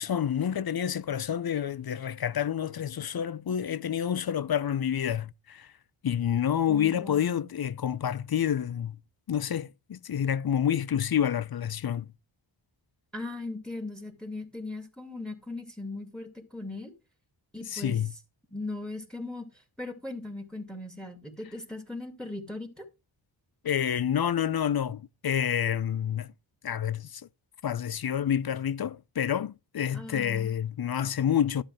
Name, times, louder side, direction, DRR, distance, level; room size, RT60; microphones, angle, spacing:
voice 1, 0.0-5.7 6.0-9.0 9.3-12.1 17.7-18.1 23.6-26.3 26.6-27.2 27.6-31.6, left 9 dB, 50° left, 0.6 m, -28 dB
voice 2, 6.7-7.5 13.1-16.9 17.5-18.0 18.5-19.5 19.8-22.9 29.9-30.5, left 2 dB, ahead, 2.5 m, -38 dB
12.5 x 7.7 x 3.4 m
wide cardioid pair, 80°, 48 cm